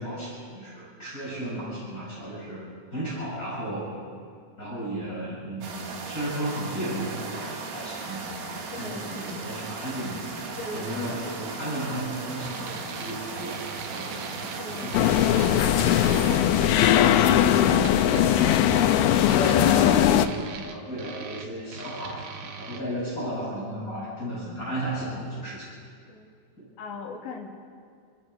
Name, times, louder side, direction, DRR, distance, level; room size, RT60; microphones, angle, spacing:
voice 1, 0.0-2.7 2.9-3.9 4.6-8.3 8.7-10.3 10.7-13.6 13.9-14.2 14.8-15.5 16.8-18.5 18.8-18.9 19.3-25.7 26.6-26.7, right 1 dB, 20° left, -8 dB, 7.4 m, -34 dB
sound 1, 5.6-16.4, right 4 dB, 90° right, 4.6 m, -37 dB
voice 2, 8.7-9.3 10.6-11.1 14.6-15.0 26.1-26.3 26.8-27.5, left 3 dB, 55° left, -2 dB, 3.4 m, -39 dB
sound 2, 12.5-22.8, right 6 dB, 70° right, 3.0 m, -40 dB
sound 3, 14.9-20.3, left 11 dB, 80° left, 2.6 m, -20 dB
29.5 x 14.0 x 6.5 m, 2.2 s
omnidirectional pair, 4.6 m